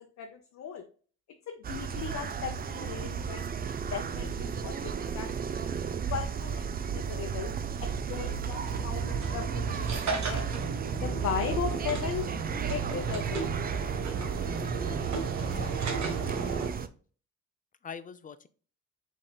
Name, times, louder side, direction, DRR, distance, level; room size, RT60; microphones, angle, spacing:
voice 1, 0.2-0.8 1.5-5.7 6.1-7.5 7.8-10.5 11.0-12.2 12.7-13.7, left 7 dB, 60° left, 3 dB, 0.7 m, -37 dB
sound 1, 1.6-16.9, right 6 dB, 30° right, 0.4 m, -34 dB
sound 2, 8.7-16.7, right 5 dB, 65° right, 1.3 m, -34 dB
voice 2, 15.4-16.0 16.3-16.6 17.8-18.5, left 6 dB, 25° left, 13 dB, 0.4 m, -44 dB
5.3 x 3.7 x 2.3 m, 0.41 s
cardioid pair, 90°, 30 cm